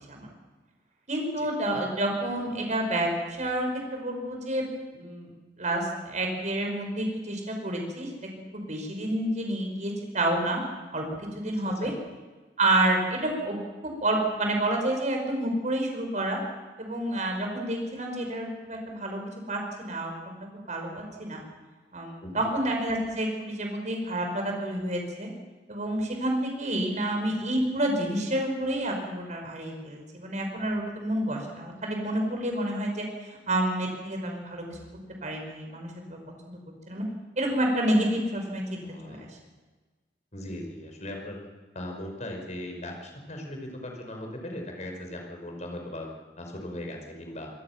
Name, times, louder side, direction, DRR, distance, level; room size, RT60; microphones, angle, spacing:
voice 1, 1.1-3.1 3.4-3.7 3.9-4.6 4.9-5.3 5.6-8.1 8.5-10.6 10.9-11.1 11.3-11.9 12.6-16.4 16.8-19.2 19.5-21.4 21.9-25.3 25.7-33.0 33.5-34.8 35.2-36.2 36.5-36.6 36.9-37.0 37.4-39.3, right 1 dB, 45° right, 2 dB, 5.7 m, -29 dB
voice 2, 11.5-11.9 22.2-22.5 38.8-39.3 40.3-41.4 41.7-46.1 46.4-47.5, left 1 dB, 45° left, 2 dB, 5.4 m, -38 dB
26.5 x 19.0 x 6.1 m, 1.3 s
head